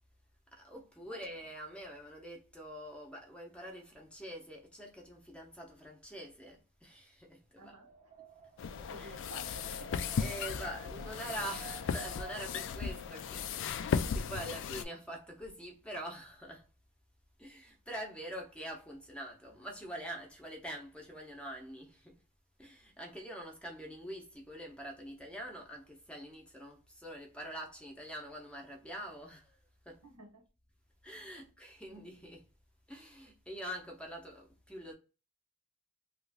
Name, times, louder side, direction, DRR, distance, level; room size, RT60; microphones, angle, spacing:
voice 1, 0.5-7.7 9.0-9.2 10.2-16.7 17.4-22.2 22.6-30.0 31.0-32.5 32.9-34.9, right 1 dB, 5° left, 0.7 m, -45 dB
Wind, 7.6-13.6, right 6 dB, 35° right, 0.6 m, -54 dB
voice 2, 7.6-7.9 8.2-8.3 8.8-9.9 30.0-30.4 31.4-31.5, right 2 dB, 85° right, 1.0 m, -52 dB
sound 1, 8.6-14.8, left 6 dB, 55° left, 0.3 m, -36 dB
2.9 x 2.4 x 3.4 m
head